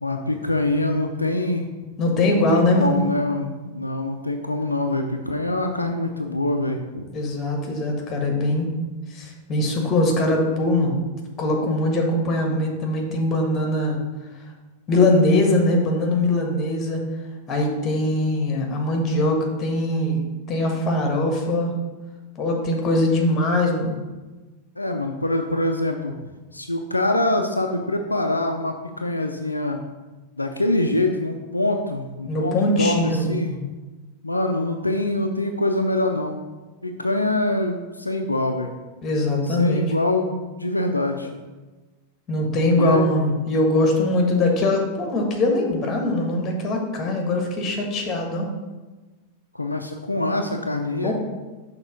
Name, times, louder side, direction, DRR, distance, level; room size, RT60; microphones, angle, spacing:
voice 1, 0.0-1.7 2.5-7.0 24.8-26.1 26.5-29.8 30.4-33.6 34.2-36.4 36.8-38.7 39.5-41.4 42.7-43.0 49.5-51.1, left 2 dB, 85° left, 4 dB, 0.4 m, -24 dB
voice 2, 2.0-3.0 7.1-8.7 9.1-11.0 11.4-14.0 14.9-17.0 17.5-21.7 22.4-24.0 32.2-33.6 39.0-39.9 42.3-48.5 51.0-51.1, left 1 dB, 25° left, 1 dB, 1.5 m, -22 dB
6.0 x 3.5 x 5.2 m, 1.2 s
figure-of-eight pair, 90°, 0 cm